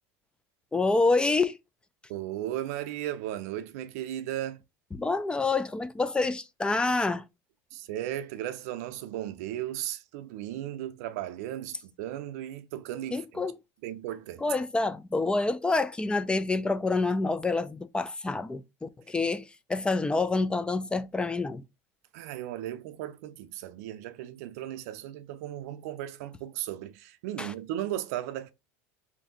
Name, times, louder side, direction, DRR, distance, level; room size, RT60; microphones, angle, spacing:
voice 1, 0.7-1.6 4.9-7.2 13.1-13.6 14.4-21.6 27.4-27.5, left 3 dB, 10° left, 0.3 m, -27 dB
voice 2, 2.1-4.6 7.7-13.4 13.8-14.4 22.1-28.5, right 12 dB, 80° right, 0.5 m, -36 dB
3.2 x 2.6 x 3.7 m
supercardioid pair, 110°, 8 cm